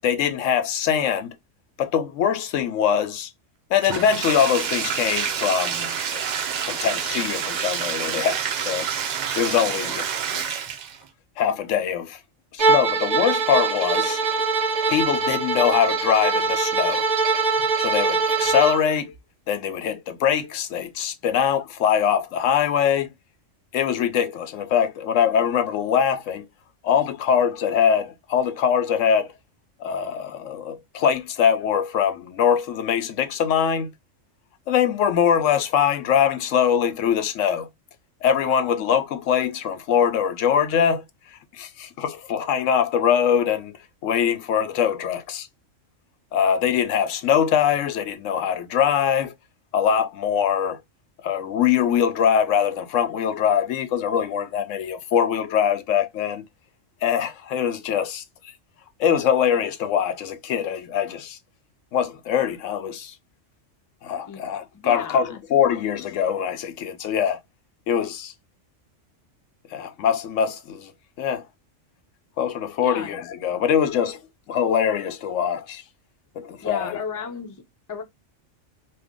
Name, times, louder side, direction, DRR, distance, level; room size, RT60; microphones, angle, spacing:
voice 1, 0.0-1.3 1.8-3.3 3.7-6.3 6.6-8.9 9.4-10.4 11.4-12.2 12.5-14.2 14.9-17.1 17.8-19.1 19.5-23.1 23.7-26.4 26.8-29.3 29.8-33.9 34.7-37.7 38.2-41.0 41.5-43.7 44.0-45.5 46.3-49.3 49.7-50.8 51.2-56.4 57.0-58.2 59.0-61.4 61.9-63.1 64.0-67.4 67.9-68.3 69.7-70.9 71.2-71.4 72.4-74.2 74.5-75.8 76.4-77.0, left 8 dB, 80° left, 0.9 m, -23 dB
Bathtub (filling or washing), 3.8-11.0, right 7 dB, 80° right, 0.4 m, -28 dB
Bowed string instrument, 12.6-18.8, right 4 dB, 45° right, 0.7 m, -22 dB
voice 2, 64.7-65.4 72.8-73.2 76.6-78.0, left 6 dB, 25° left, 0.4 m, -34 dB
2.7 x 2.6 x 3.5 m
omnidirectional pair, 1.3 m